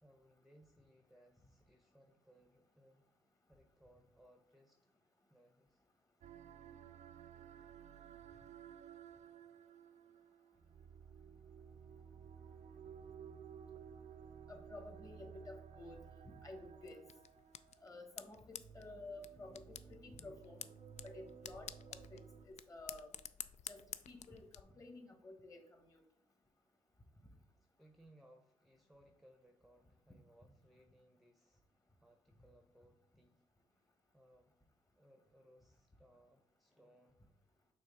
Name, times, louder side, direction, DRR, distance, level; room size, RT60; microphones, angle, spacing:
voice 1, 0.0-3.0 3.5-4.8 5.3-5.8 27.6-31.6 32.0-33.4 33.7-34.6 35.0-37.4, equal, ahead, 4 dB, 0.8 m, -67 dB
sound 1, 6.2-22.5, right 7 dB, 60° right, 0.5 m, -56 dB
voice 2, 14.5-17.0 17.8-20.6 21.0-23.1 23.7-25.6 25.9-26.0, left 2 dB, 25° left, 4 dB, 1.5 m, -53 dB
sound 2, 16.8-24.6, left 9 dB, 60° left, 0.4 m, -52 dB
6.2 x 3.3 x 4.7 m, 0.73 s
supercardioid pair, 65°, 13 cm